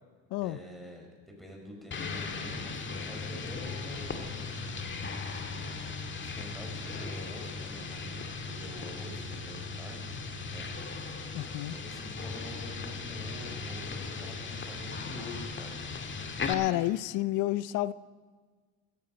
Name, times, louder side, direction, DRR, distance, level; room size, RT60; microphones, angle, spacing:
voice 1, 0.4-4.5 5.2-5.7 6.2-10.1 10.5-10.7 11.7-15.8, equal, ahead, 5.1 m, -47 dB
sound 1, 1.9-16.5, left 4 dB, 30° left, 1.9 m, -38 dB
voice 2, 11.3-11.7 16.4-17.9, left 16 dB, 55° left, 0.6 m, -30 dB
16.0 x 14.0 x 5.3 m
hypercardioid pair, 75°, 37 cm